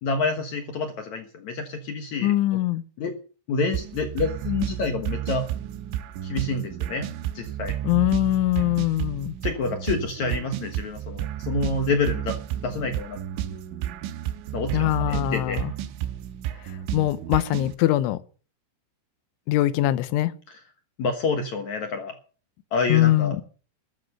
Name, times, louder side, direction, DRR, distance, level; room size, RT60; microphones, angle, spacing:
voice 1, 0.0-2.6 3.0-3.1 3.5-5.5 6.2-7.1 7.3-7.7 9.4-12.4 12.6-13.2 13.4-13.6 14.5-15.6 20.5-20.6 21.0-22.1 22.7-23.4, left 4 dB, 70° left, 1.8 m, -28 dB
voice 2, 2.2-2.8 7.8-9.4 14.7-15.7 16.9-18.2 19.5-20.3 22.9-23.4, left 15 dB, 90° left, 3.3 m, -22 dB
sound 1, 3.7-17.8, right 12 dB, 90° right, 3.4 m, -32 dB
14.0 x 10.5 x 6.7 m
omnidirectional pair, 5.4 m